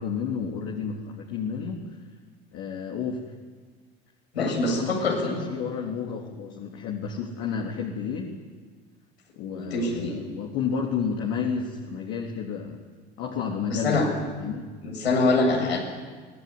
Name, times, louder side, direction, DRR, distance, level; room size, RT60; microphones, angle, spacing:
voice 1, 0.0-1.8 2.5-3.2 4.4-8.3 9.4-12.9 13.2-14.6, left 6 dB, 50° left, -1 dB, 3.5 m, -31 dB
voice 2, 4.3-5.5 9.5-10.1 13.7-14.0 14.8-15.8, left 2 dB, 75° left, 0 dB, 7.8 m, -24 dB
24.0 x 20.0 x 9.8 m, 1.5 s
figure-of-eight pair, 70°, 31 cm